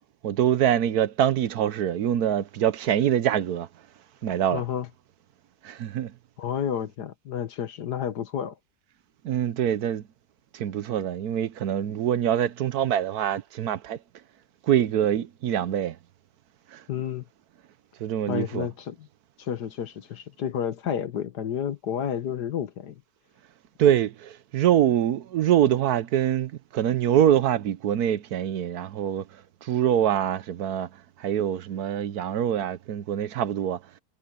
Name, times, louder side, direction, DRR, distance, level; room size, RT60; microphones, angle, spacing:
voice 1, 0.2-3.7 4.2-4.6 5.6-6.1 9.2-10.0 10.5-14.0 14.7-16.0 16.7-16.8 18.0-18.7 23.8-29.2 29.6-30.9 31.2-33.8, right 10 dB, 70° right, 1.3 m, -24 dB
voice 2, 4.5-4.9 6.4-8.5 16.9-17.2 18.3-19.1 19.4-23.0, left 8 dB, 80° left, 1.8 m, -30 dB
omnidirectional pair, 1.7 m